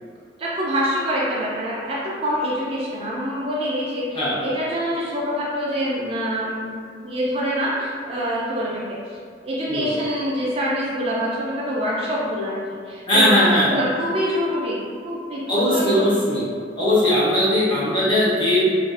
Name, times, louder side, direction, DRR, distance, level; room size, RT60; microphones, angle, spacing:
voice 1, 0.4-6.8 7.0-9.0 9.4-12.6 12.9-14.8 15.0-16.1, equal, 30° right, -6 dB, 0.3 m, -25 dB
voice 2, 13.1-13.7 15.5-16.4 16.8-18.8, left 1 dB, 25° left, -9 dB, 0.7 m, -19 dB
2.4 x 2.2 x 2.3 m, 2.2 s
head